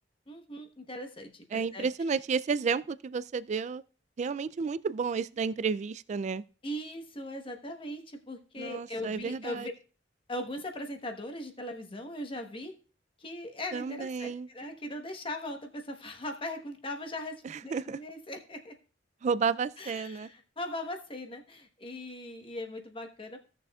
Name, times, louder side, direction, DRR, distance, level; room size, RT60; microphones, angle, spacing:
voice 1, 0.3-1.9 6.6-9.7 10.3-12.7 13.2-18.8 19.8-23.4, left 1 dB, 30° left, 1.1 m, -39 dB
voice 2, 1.5-3.8 4.2-6.4 8.6-9.7 13.7-14.5 17.4-18.0 19.2-20.3, right 5 dB, 40° right, 0.3 m, -31 dB
16.0 x 6.8 x 2.3 m
head